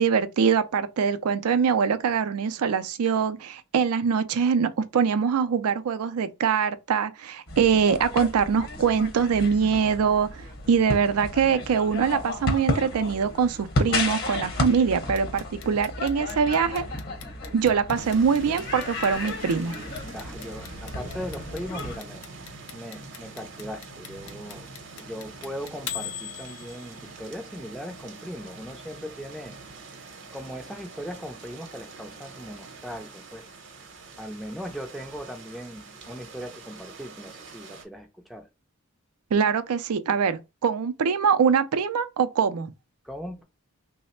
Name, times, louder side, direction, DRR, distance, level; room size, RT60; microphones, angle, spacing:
voice 1, 0.0-16.8 17.5-19.8 39.3-42.7, right 6 dB, 85° right, 0.4 m, -23 dB
sound 1, 7.5-22.0, left 2 dB, 45° left, 0.9 m, -33 dB
Clock, 15.2-27.1, left 10 dB, 75° left, 0.5 m, -40 dB
sound 2, 17.9-37.8, right 4 dB, 55° right, 0.7 m, -45 dB
voice 2, 20.1-22.2 22.7-24.7 25.0-29.6 30.3-33.5 34.2-38.5 43.0-43.4, equal, ahead, 0.4 m, -39 dB
3.1 x 2.0 x 4.2 m
head